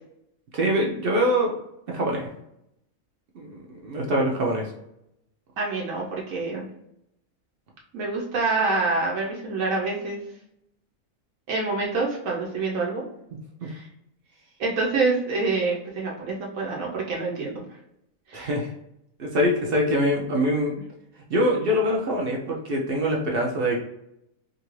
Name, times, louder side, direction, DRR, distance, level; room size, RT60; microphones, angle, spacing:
voice 1, 0.5-1.5 1.9-2.3 3.3-4.7 13.6-13.7 18.3-18.7 19.2-20.7 21.3-23.8, equal, 60° right, -1 dB, 0.6 m, -24 dB
voice 2, 5.6-6.6 7.9-10.2 11.5-13.1 13.6-13.9 14.6-17.6 18.3-18.5, right 3 dB, 80° right, -3 dB, 1.0 m, -26 dB
2.7 x 2.5 x 3.0 m, 0.82 s
omnidirectional pair, 1.4 m